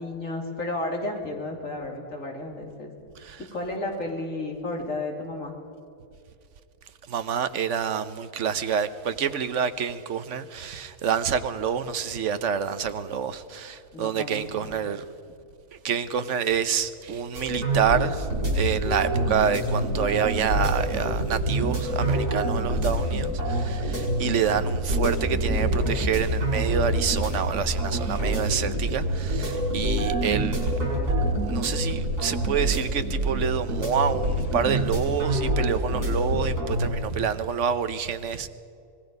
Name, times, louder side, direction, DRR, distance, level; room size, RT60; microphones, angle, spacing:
voice 1, 0.0-2.9 3.5-5.5 13.9-14.9, left 2 dB, 55° left, 3.3 m, -32 dB
voice 2, 7.1-15.0 15.8-18.3 18.5-30.7 31.5-38.5, right 7 dB, 55° right, 1.1 m, -27 dB
sound 1, 17.3-36.9, right 1 dB, 85° right, 6.6 m, -26 dB
25.5 x 19.5 x 5.3 m
omnidirectional pair, 1.6 m